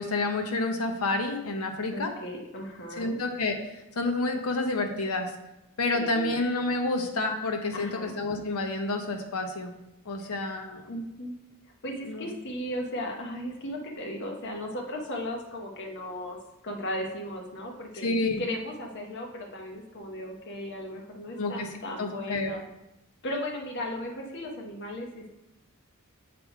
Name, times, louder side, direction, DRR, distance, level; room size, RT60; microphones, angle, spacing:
voice 1, 0.0-2.1 2.9-5.3 5.8-9.7 10.1-10.8 12.0-12.3 18.0-18.4 21.4-21.7 22.0-22.6, left 2 dB, 80° left, 4 dB, 0.8 m, -29 dB
voice 2, 1.9-3.2 5.9-6.4 7.7-8.1 10.2-10.3 10.9-11.3 11.8-16.4 16.6-18.1 18.4-22.6 23.2-25.4, left 1 dB, 55° left, 1 dB, 0.9 m, -36 dB
7.7 x 3.6 x 4.7 m, 0.91 s
head